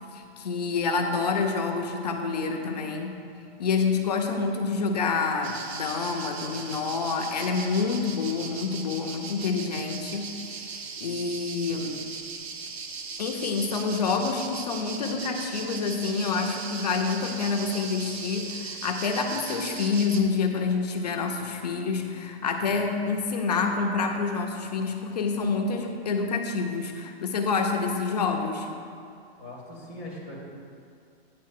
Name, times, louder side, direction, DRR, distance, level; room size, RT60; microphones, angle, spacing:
voice 1, 0.1-3.2 3.6-12.1 13.2-28.7, left 4 dB, 40° left, 3 dB, 0.6 m, -28 dB
sound 1, 5.4-20.2, right 4 dB, 75° right, 1.0 m, -38 dB
voice 2, 29.4-30.4, left 1 dB, 15° right, -7 dB, 0.4 m, -40 dB
9.4 x 4.0 x 6.5 m, 2.4 s
hypercardioid pair, 180°, 32 cm